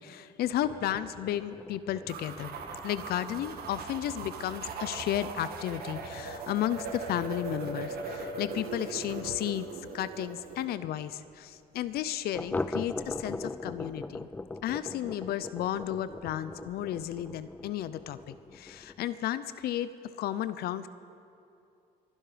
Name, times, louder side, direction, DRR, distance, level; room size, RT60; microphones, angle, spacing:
voice 1, 0.0-2.6 2.8-9.7 9.9-14.3 14.6-19.9 20.2-20.9, left 12 dB, 70° left, 14 dB, 0.6 m, -33 dB
sound 1, 0.6-9.8 10.1-10.2 10.6-10.7 11.0-11.1 12.3-19.1, left 2 dB, 10° left, 0.3 m, -41 dB
sound 2, 2.1-10.6, right 4 dB, 65° right, 1.6 m, -39 dB
23.0 x 11.0 x 5.0 m, 2.7 s
cardioid pair, 110°, 17 cm